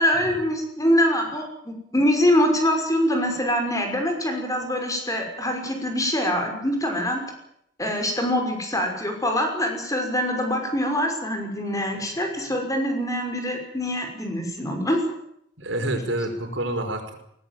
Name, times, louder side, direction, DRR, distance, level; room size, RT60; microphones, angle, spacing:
voice 1, 0.0-7.2 7.8-15.0, equal, 20° left, 4 dB, 5.9 m, -24 dB
voice 2, 15.6-17.1, right 1 dB, 75° right, 5 dB, 5.3 m, -28 dB
21.5 x 19.5 x 9.3 m, 0.73 s
head